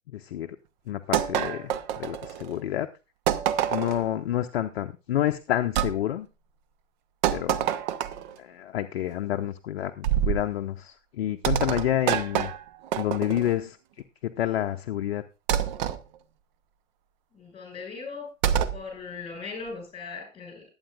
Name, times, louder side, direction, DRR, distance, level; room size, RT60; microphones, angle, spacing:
voice 1, 0.1-0.6 0.9-2.9 3.7-6.3 7.3-7.7 8.4-12.5 13.0-13.8 14.2-15.2, left 12 dB, 50° left, 0.7 m, -29 dB
sound 1, 1.1-2.6 3.3-4.1 5.8-5.9 7.2-8.4 10.0-10.5 11.4-13.6 15.5-16.0 18.4-18.8, right 10 dB, 35° right, 0.8 m, -26 dB
voice 2, 17.3-18.3 18.7-20.6, left 4 dB, 15° left, 5.9 m, -38 dB
20.0 x 8.8 x 2.4 m
figure-of-eight pair, 105°, 38 cm